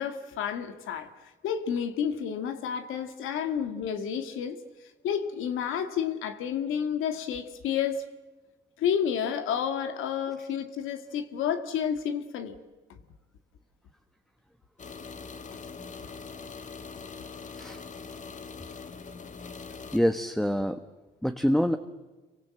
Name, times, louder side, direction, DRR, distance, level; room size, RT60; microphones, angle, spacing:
voice 1, 0.0-4.6 5.0-8.0 8.8-12.6 12.9-13.0, left 8 dB, 90° left, 1.9 m, -30 dB
sound 1, 14.8-20.0, left 5 dB, 40° left, 1.7 m, -42 dB
voice 2, 19.9-20.8 21.2-21.8, equal, ahead, 1.2 m, -25 dB
27.0 x 24.0 x 7.7 m
cardioid pair, 90°, 20 cm